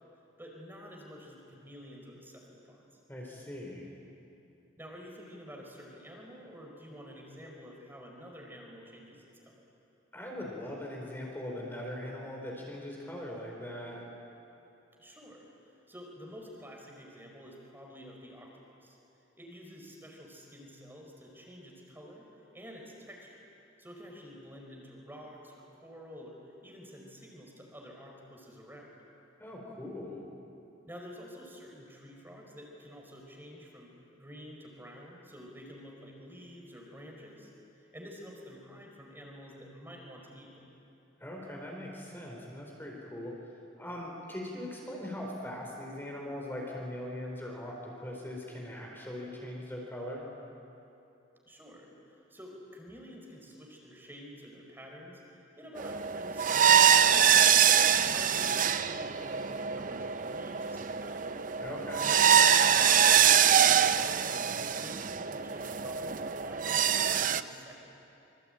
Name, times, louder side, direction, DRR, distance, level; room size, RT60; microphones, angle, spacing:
voice 1, 0.4-2.9 4.8-9.7 15.0-19.0 19.4-22.3 22.5-23.4 23.8-28.9 30.9-37.5 37.8-40.7 51.5-57.5 58.1-61.2 62.2-64.4 64.8-67.8, equal, 10° right, 0 dB, 4.8 m, -49 dB
voice 2, 3.1-3.8 10.1-14.0 29.4-30.2 41.2-43.3 43.8-50.2 61.6-62.1, left 1 dB, 10° left, -1 dB, 4.3 m, -40 dB
sound 1, 55.8-67.4, right 8 dB, 45° right, 0.7 m, -24 dB
26.5 x 24.5 x 9.1 m, 2.9 s
head